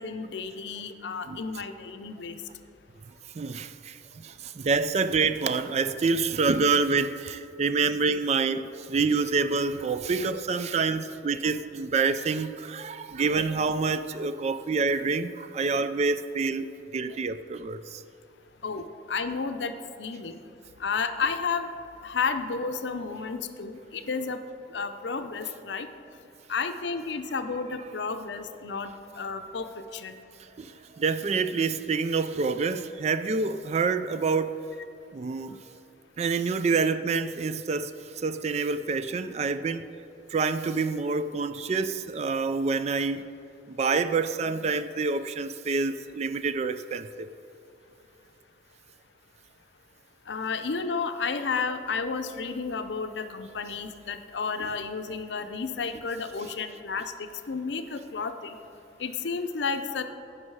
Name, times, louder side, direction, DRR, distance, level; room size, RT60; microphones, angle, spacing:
voice 1, 0.0-2.4 14.9-15.0 18.6-19.7 20.0-20.4 20.8-21.7 22.0-24.4 24.7-25.9 26.5-30.2 50.3-58.6 59.0-60.0, left 5 dB, 75° left, 0.6 m, -32 dB
voice 2, 3.3-16.7 16.9-18.0 30.6-34.6 35.1-35.6 36.2-39.9 40.3-43.3 43.7-47.3 54.6-54.7, right 4 dB, 35° right, 0.3 m, -27 dB
15.5 x 5.3 x 4.7 m
head